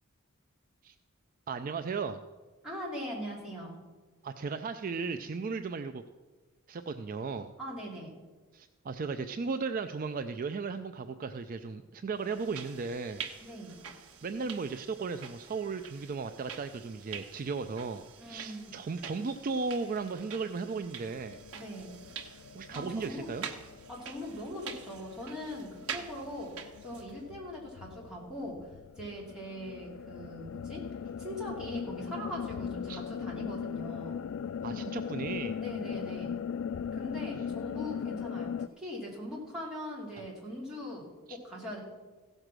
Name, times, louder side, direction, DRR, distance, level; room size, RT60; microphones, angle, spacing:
voice 1, 1.5-2.2 4.2-6.0 6.7-7.5 8.5-13.3 14.2-21.4 22.5-23.5 32.9-33.0 34.6-35.6 41.3-41.4, right 4 dB, 40° right, 8 dB, 0.4 m, -36 dB
voice 2, 2.6-3.8 7.6-8.1 13.4-13.7 18.2-18.7 21.5-21.9 22.7-23.3 23.9-26.5 26.8-28.7 29.0-30.8 31.2-34.2 35.6-36.4 36.9-41.8, equal, 5° right, -5 dB, 3.0 m, -41 dB
sound 1, 12.2-27.2, right 7 dB, 85° right, 1.1 m, -46 dB
sound 2, 21.2-38.7, left 7 dB, 65° left, 0.3 m, -40 dB
16.0 x 6.6 x 6.1 m, 1.3 s
head